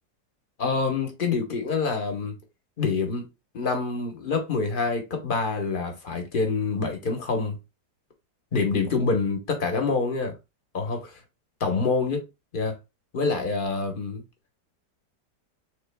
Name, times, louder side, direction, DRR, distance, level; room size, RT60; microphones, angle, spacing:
voice 1, 0.6-2.4 2.8-3.3 3.5-7.6 8.5-10.3 10.7-11.2 11.6-12.2 12.5-12.7 13.1-14.2, left 4 dB, 35° left, 1.1 m, -26 dB
5.6 x 3.8 x 2.2 m
omnidirectional pair, 1.8 m